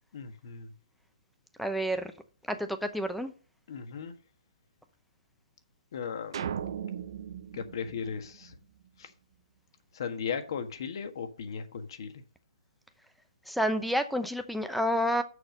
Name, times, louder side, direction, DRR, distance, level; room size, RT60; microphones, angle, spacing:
voice 1, 0.1-0.7 3.7-4.1 5.9-6.5 7.5-8.5 9.0-9.1 9.9-12.2, left 6 dB, 60° left, 1.5 m, -37 dB
voice 2, 1.6-2.1 2.5-3.3 13.5-15.2, equal, ahead, 0.8 m, -29 dB
sound 1, 6.3-8.8, right 8 dB, 60° right, 1.0 m, -38 dB
6.6 x 5.7 x 6.6 m
hypercardioid pair, 140°, 3 cm